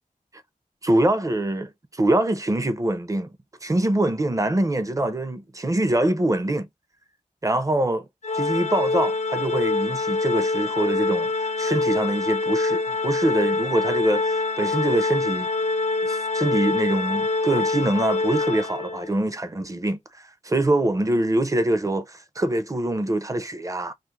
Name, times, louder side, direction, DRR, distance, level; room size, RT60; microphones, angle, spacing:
voice 1, 0.8-3.3 3.6-6.7 7.4-8.0 8.3-15.5 16.0-23.9, right 1 dB, 25° right, 0.5 m, -24 dB
Organ, 8.2-19.1, left 3 dB, 55° left, 0.4 m, -25 dB
2.3 x 2.1 x 3.1 m
cardioid pair, 55°, 14 cm